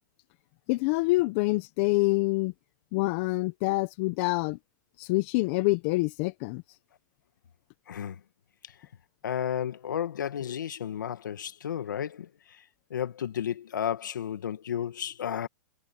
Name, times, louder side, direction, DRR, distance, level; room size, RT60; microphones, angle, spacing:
voice 1, 0.7-2.5 2.9-4.6 5.0-6.6, left 22 dB, 45° left, 1.1 m, -26 dB
voice 2, 7.9-8.2 8.6-8.8 9.2-12.6 12.9-15.5, left 9 dB, 80° left, 1.8 m, -33 dB
hypercardioid pair, 135°, 10 cm